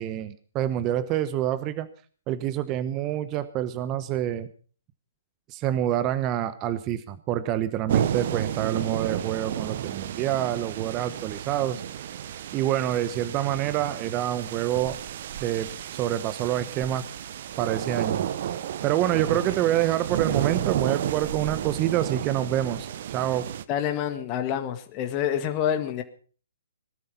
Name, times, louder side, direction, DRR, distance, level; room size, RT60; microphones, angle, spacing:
voice 1, 0.0-1.9 2.3-4.5 5.5-11.8 12.5-15.0 15.4-17.0 17.6-18.3 18.8-23.5, right 12 dB, 25° right, 13 dB, 1.0 m, -27 dB
sound 1, 7.9-23.6, right 10 dB, 50° right, 1.0 m, -32 dB
voice 2, 23.7-26.0, left 9 dB, 30° left, 7 dB, 1.9 m, -27 dB
19.5 x 12.5 x 5.6 m, 0.42 s
figure-of-eight pair, 130°, 0 cm